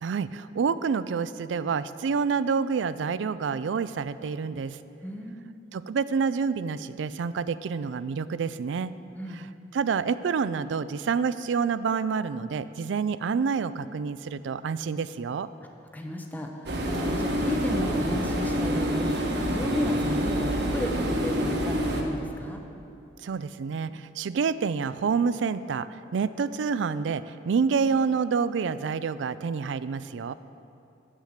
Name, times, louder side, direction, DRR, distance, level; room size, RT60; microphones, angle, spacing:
voice 1, 0.0-4.8 5.7-8.9 9.3-9.4 9.7-15.5 23.2-30.3, right 5 dB, 80° right, 15 dB, 0.4 m, -28 dB
voice 2, 5.0-5.5 9.2-9.5 15.9-22.6, equal, 10° left, 2 dB, 0.7 m, -33 dB
sound 1, 16.7-22.0, equal, 65° right, 1.2 m, -27 dB
9.8 x 8.2 x 6.4 m, 2.7 s
head